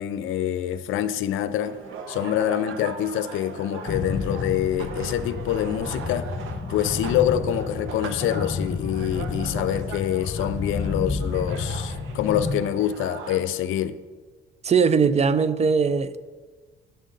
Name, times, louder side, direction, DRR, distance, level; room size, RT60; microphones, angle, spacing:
voice 1, 0.0-1.8 2.1-6.3 6.7-14.0, left 11 dB, 85° left, 0.5 m, -26 dB
sound 1, 1.6-13.4, right 5 dB, 90° right, 0.9 m, -39 dB
sound 2, 3.9-12.6, left 4 dB, 35° left, 1.3 m, -31 dB
voice 2, 14.6-16.2, right 5 dB, 35° right, 0.4 m, -20 dB
10.5 x 6.5 x 3.8 m
cardioid pair, 90°, 20 cm